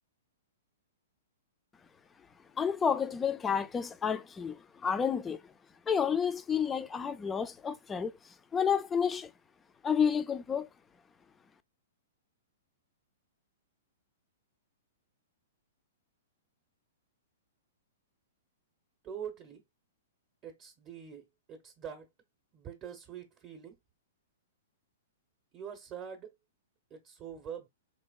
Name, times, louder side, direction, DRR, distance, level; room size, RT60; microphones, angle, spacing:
voice 1, 2.6-5.4 5.9-8.1 8.5-9.3 9.8-10.7, left 7 dB, 15° left, 0.4 m, -30 dB
voice 2, 19.0-19.6 20.4-21.2 21.5-22.1 22.5-23.7 25.5-26.3 26.9-27.7, right 8 dB, 25° right, 0.7 m, -44 dB
4.3 x 2.8 x 2.3 m
hypercardioid pair, 140°, 0 cm